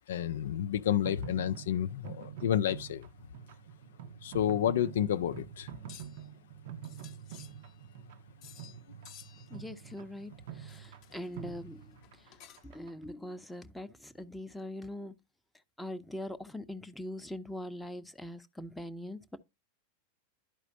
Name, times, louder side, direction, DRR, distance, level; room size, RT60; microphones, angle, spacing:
voice 1, 0.1-3.1 4.2-5.7, left 10 dB, 60° left, 0.4 m, -30 dB
sound 1, 0.9-13.0, right 9 dB, 55° right, 0.8 m, -47 dB
sound 2, 5.6-6.3 6.8-8.0 8.4-8.8 9.0-9.6 10.7-11.4 12.0-12.8, left 12 dB, 40° left, 0.9 m, -54 dB
voice 2, 9.5-12.0 12.6-15.1 15.8-19.4, left 1 dB, 5° left, 0.7 m, -42 dB
11.5 x 4.9 x 2.6 m
figure-of-eight pair, 90°, 0 cm